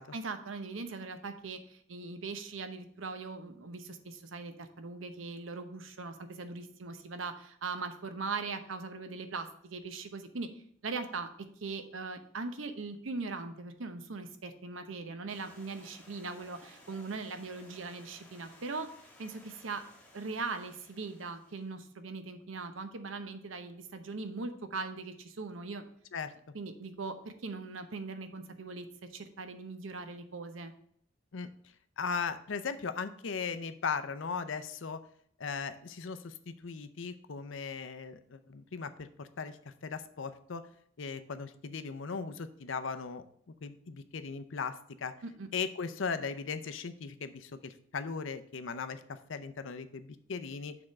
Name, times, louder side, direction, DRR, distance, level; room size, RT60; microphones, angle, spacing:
voice 1, 0.1-10.5 10.8-11.3 11.6-18.9 19.2-19.8 20.1-25.8 26.5-30.7 45.2-45.5, right 4 dB, 85° right, 8 dB, 0.8 m, -40 dB
Stream, 15.3-21.7, left 1 dB, 5° left, 1.2 m, -58 dB
voice 2, 32.0-35.0 35.4-40.7 41.0-43.2 43.6-45.1 45.5-50.8, left 5 dB, 80° left, 11 dB, 0.6 m, -38 dB
6.8 x 3.7 x 6.3 m, 0.65 s
head